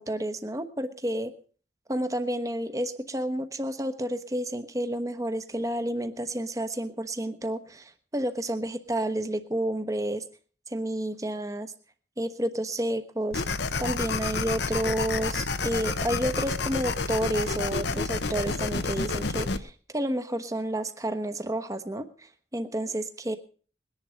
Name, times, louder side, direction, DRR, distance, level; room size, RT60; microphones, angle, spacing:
voice 1, 0.0-1.3 1.9-10.2 10.7-11.7 12.2-13.5 13.8-23.4, right 1 dB, 20° right, 10 dB, 1.1 m, -30 dB
sound 1, 13.3-19.6, left 3 dB, 80° left, 1.0 m, -29 dB
20.5 x 10.5 x 5.3 m, 0.42 s
head